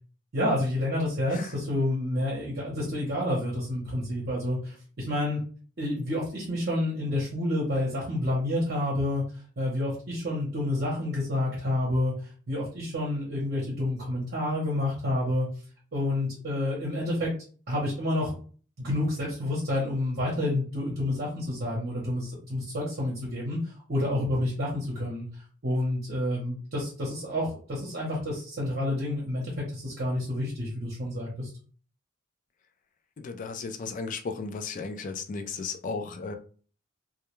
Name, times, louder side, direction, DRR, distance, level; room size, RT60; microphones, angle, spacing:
voice 1, 0.3-5.4 5.8-9.2 9.6-12.1 12.5-15.5 15.9-17.3 17.7-18.3 18.8-23.6 23.9-25.3 25.6-31.5, left 1 dB, 45° right, -4 dB, 0.7 m, -29 dB
voice 2, 33.2-36.3, left 4 dB, 35° left, 7 dB, 0.3 m, -35 dB
2.2 x 2.2 x 3.0 m, 0.41 s
head